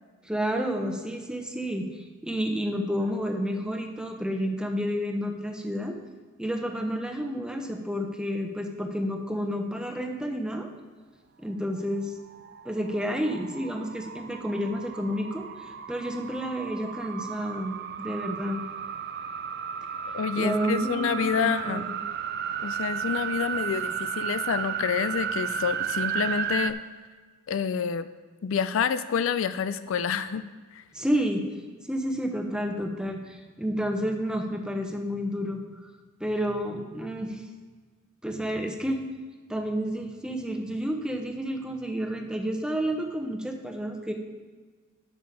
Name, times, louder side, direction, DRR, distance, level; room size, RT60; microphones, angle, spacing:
voice 1, 0.3-1.9 2.2-6.0 6.4-10.7 11.4-12.1 12.6-15.5 15.9-18.6 20.3-21.9 30.9-31.4 31.9-35.6 36.2-37.4 38.2-39.0 39.5-44.1, equal, 5° right, 3 dB, 0.8 m, -30 dB
sound 1, 12.2-26.7, right 8 dB, 50° right, 0.4 m, -34 dB
voice 2, 20.1-21.8 22.6-26.8 27.5-28.1 28.4-30.4 30.7-30.8, left 7 dB, 65° left, 13 dB, 0.4 m, -28 dB
11.0 x 6.6 x 4.0 m, 1.5 s
head